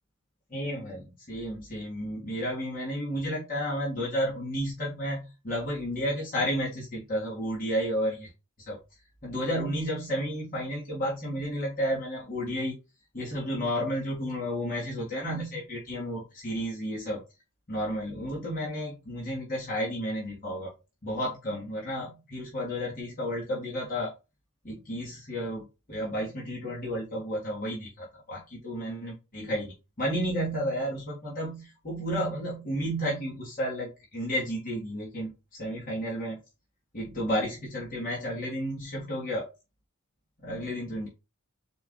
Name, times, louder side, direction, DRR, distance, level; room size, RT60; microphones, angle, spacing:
voice 1, 0.5-8.3 8.7-8.8 9.2-12.7 13.1-17.2 17.7-20.7 21.0-24.1 24.6-36.4 36.9-39.5 40.4-41.1, equal, 40° left, -5 dB, 1.4 m, -32 dB
4.5 x 2.4 x 3.6 m, 0.28 s
head